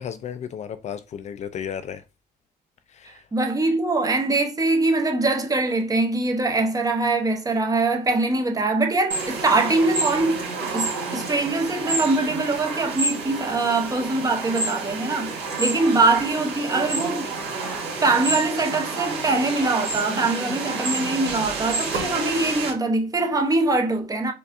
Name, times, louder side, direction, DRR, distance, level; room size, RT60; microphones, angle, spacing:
voice 1, 0.0-2.0 2.9-3.3, left 8 dB, 45° left, 0.4 m, -34 dB
voice 2, 3.3-17.3 18.0-24.3, right 2 dB, 20° right, 0.7 m, -23 dB
sound 1, 9.1-22.7, right 3 dB, 75° right, 1.9 m, -29 dB
4.7 x 2.5 x 2.5 m
cardioid pair, 110°, 17 cm